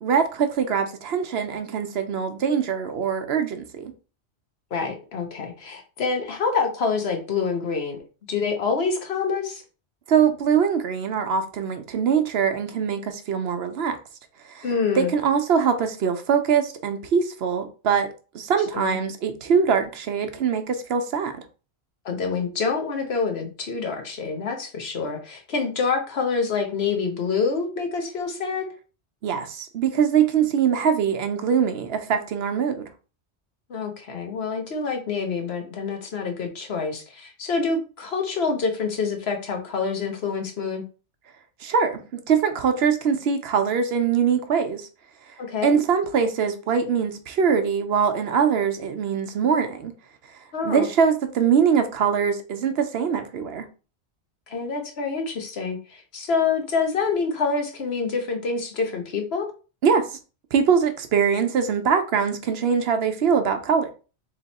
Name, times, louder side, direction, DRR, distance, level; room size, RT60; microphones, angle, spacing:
voice 1, 0.0-3.9 10.1-14.0 14.4-14.7 14.9-18.1 18.3-21.3 29.2-32.9 41.6-44.9 45.6-49.9 50.6-53.7 59.8-60.2 60.5-63.9, right 6 dB, 65° right, 0.8 m, -22 dB
voice 2, 4.7-8.0 8.3-9.6 14.6-15.1 18.7-19.0 22.0-28.7 33.7-40.8 45.4-45.8 50.5-50.9 54.5-59.5, left 5 dB, 65° left, 1.1 m, -26 dB
3.5 x 3.0 x 4.0 m
omnidirectional pair, 1.2 m